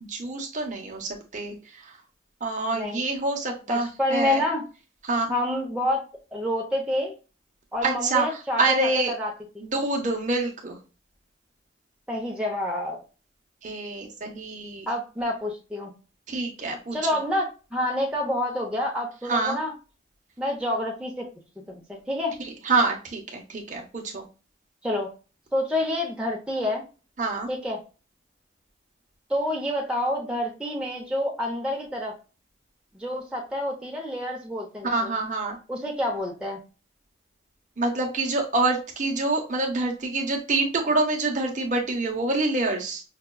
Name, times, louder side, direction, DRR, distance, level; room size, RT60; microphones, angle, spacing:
voice 1, 0.1-1.9 2.4-4.4 5.0-5.3 7.8-8.3 8.6-9.1 9.6-10.8 13.6-14.9 16.3-17.0 19.3-19.6 22.6-24.2 27.2-27.5 34.8-35.6 37.8-43.0, right 3 dB, 40° right, 1 dB, 0.8 m, -26 dB
voice 2, 3.7-4.6 5.3-6.0 6.3-7.1 7.7-9.7 12.1-13.0 14.9-15.9 16.9-19.7 20.4-21.3 21.6-22.4 24.8-25.1 25.5-26.8 27.5-27.8 29.3-32.1 32.9-35.1 35.7-36.6, left 1 dB, 5° right, -3 dB, 0.7 m, -28 dB
5.7 x 2.3 x 2.2 m, 0.33 s
head